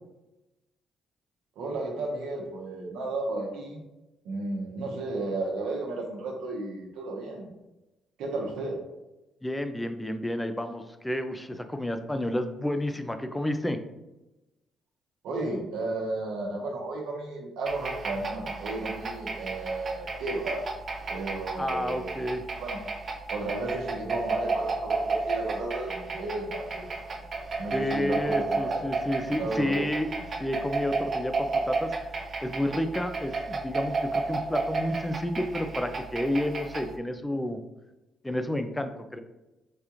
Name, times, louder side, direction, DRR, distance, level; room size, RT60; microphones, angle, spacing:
voice 1, 1.6-3.8 4.2-7.5 8.2-8.7 15.2-20.6 21.1-22.8 23.3-27.0 27.6-28.9 29.4-29.9, right 2 dB, 90° right, -1 dB, 0.9 m, -33 dB
voice 2, 9.4-13.8 21.6-22.4 27.7-30.1 30.4-31.9 32.4-37.6 38.2-39.2, left 1 dB, 10° left, 8 dB, 0.4 m, -30 dB
sound 1, 17.7-37.0, right 3 dB, 45° right, 0.5 m, -32 dB
4.9 x 2.4 x 2.9 m, 1.0 s
cardioid pair, 90°, 0 cm